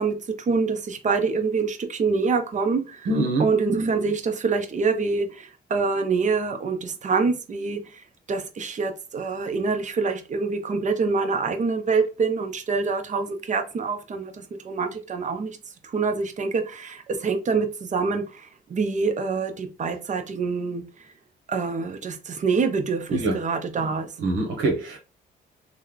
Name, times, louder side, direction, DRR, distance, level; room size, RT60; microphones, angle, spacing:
voice 1, 0.0-3.1 3.4-15.6 15.8-21.1 21.5-24.1, right 4 dB, 40° right, 0.7 m, -26 dB
voice 2, 3.1-3.4 23.1-23.3 24.2-25.0, right 2 dB, 80° right, 1.0 m, -23 dB
3.1 x 2.1 x 3.7 m
cardioid pair, 90°, 20 cm